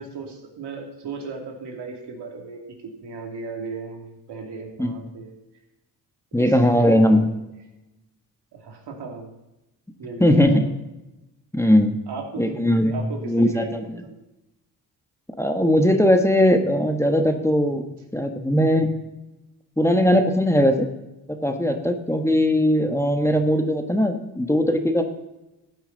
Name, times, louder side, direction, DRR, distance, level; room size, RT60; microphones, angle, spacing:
voice 1, 0.0-2.6 3.0-5.3 6.3-7.0 8.5-9.3 10.0-10.7 12.1-14.2 18.3-18.4, right 4 dB, 80° right, 0 dB, 2.8 m, -36 dB
voice 2, 6.3-7.3 10.2-10.6 11.5-12.0 12.4-13.0 13.3-14.0 15.4-17.8 18.1-18.9 19.8-20.9 21.3-25.0, equal, 5° left, 5 dB, 1.3 m, -19 dB
14.5 x 8.7 x 4.0 m, 0.97 s
cardioid pair, 80°, 40 cm